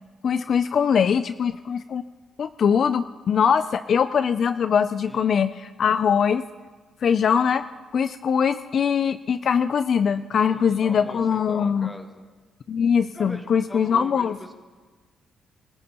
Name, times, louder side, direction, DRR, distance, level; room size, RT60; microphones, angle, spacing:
voice 1, 0.2-2.0 2.4-6.4 7.0-7.7 7.9-11.9 12.7-14.4, left 7 dB, 55° left, 12 dB, 0.4 m, -22 dB
voice 2, 10.5-12.2 13.1-14.5, left 1 dB, 15° left, 3 dB, 1.9 m, -41 dB
24.5 x 14.5 x 2.9 m, 1.4 s
cardioid pair, 90°, 0 cm